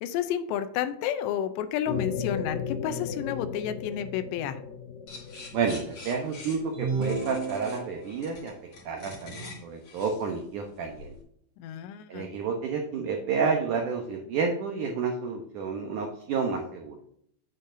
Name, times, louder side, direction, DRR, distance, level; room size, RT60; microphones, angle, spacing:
voice 1, 0.0-4.6 11.6-12.3, left 9 dB, 85° left, 10 dB, 2.9 m, -31 dB
sound 1, 1.9-6.9, left 6 dB, 55° left, 2.7 m, -36 dB
sound 2, 5.1-11.2, left 2 dB, 40° left, 3.4 m, -45 dB
voice 2, 5.5-8.5 8.9-11.2 12.1-17.0, right 5 dB, 80° right, 2 dB, 1.8 m, -30 dB
sound 3, 6.7-8.3, right 4 dB, 15° right, 2.6 m, -32 dB
9.1 x 8.2 x 2.7 m, 0.69 s
omnidirectional pair, 5.0 m